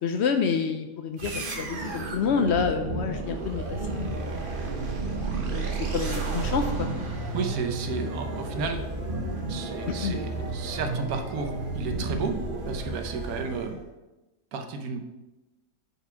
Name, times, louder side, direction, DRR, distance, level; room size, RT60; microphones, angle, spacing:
voice 1, 0.0-3.6 3.9-4.3 5.5-5.7 5.9-6.9 10.0-10.2, left 6 dB, 85° left, 6 dB, 0.5 m, -28 dB
sound 1, 1.2-13.8, right 3 dB, 40° right, 0.9 m, -32 dB
voice 2, 7.3-8.8 9.5-12.4 12.7-13.8 14.5-15.0, right 5 dB, 70° right, 5 dB, 1.2 m, -33 dB
5.1 x 4.9 x 5.7 m, 1.1 s
omnidirectional pair, 1.7 m